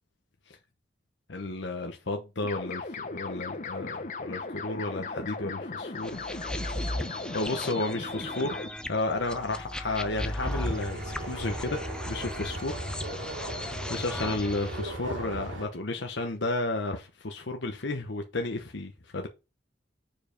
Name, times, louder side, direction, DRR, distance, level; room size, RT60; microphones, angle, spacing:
voice 1, 1.3-6.2 7.3-11.8 12.1-12.8 13.9-19.3, left 2 dB, 70° left, 1.0 m, -32 dB
sound 1, 2.4-8.7, left 3 dB, 40° left, 0.9 m, -37 dB
sound 2, 6.0-14.8, left 1 dB, 5° left, 0.5 m, -37 dB
sound 3, 10.5-15.6, right 1 dB, 80° right, 3.0 m, -37 dB
7.0 x 4.7 x 5.2 m
head